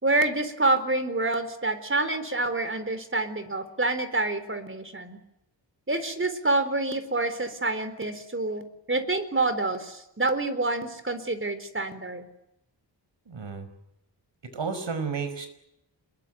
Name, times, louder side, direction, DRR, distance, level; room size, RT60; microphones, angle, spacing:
voice 1, 0.0-5.2 5.9-12.3, right 2 dB, 25° right, 11 dB, 4.1 m, -27 dB
voice 2, 13.3-13.7 14.5-15.5, right 5 dB, 75° right, 10 dB, 5.1 m, -32 dB
28.0 x 22.0 x 9.4 m, 0.82 s
wide cardioid pair, 85°, 44 cm